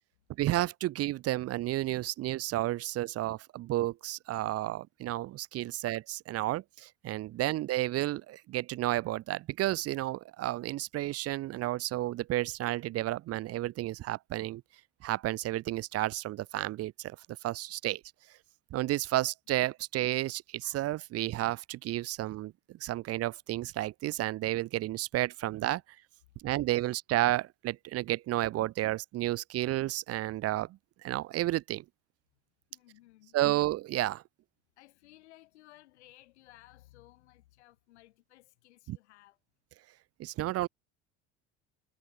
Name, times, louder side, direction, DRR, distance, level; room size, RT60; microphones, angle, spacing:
voice 1, 0.4-14.6 15.0-17.2 17.4-18.0 18.7-25.8 26.4-31.8 33.3-34.2 38.9-39.0 40.2-40.7, right 15 dB, 45° right, 0.5 m, -32 dB
voice 2, 7.3-7.6 26.2-26.8 32.3-32.4 32.7-33.4 34.8-39.4, left 17 dB, 85° left, 6.9 m, -59 dB
hypercardioid pair, 75°, 33 cm